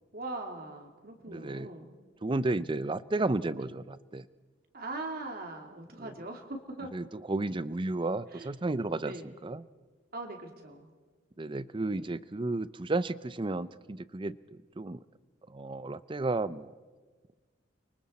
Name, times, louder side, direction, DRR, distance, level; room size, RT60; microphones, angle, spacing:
voice 1, 0.1-1.9 3.5-3.7 4.7-6.9 8.3-8.5 9.0-9.3 10.1-10.9 11.9-12.1, right 2 dB, 50° right, 3 dB, 2.7 m, -41 dB
voice 2, 1.3-1.7 2.2-4.3 6.0-6.1 6.9-9.1 9.4-9.6 11.4-15.0 15.5-16.7, right 2 dB, 25° right, 16 dB, 0.5 m, -33 dB
30.0 x 24.0 x 4.3 m, 1.4 s
head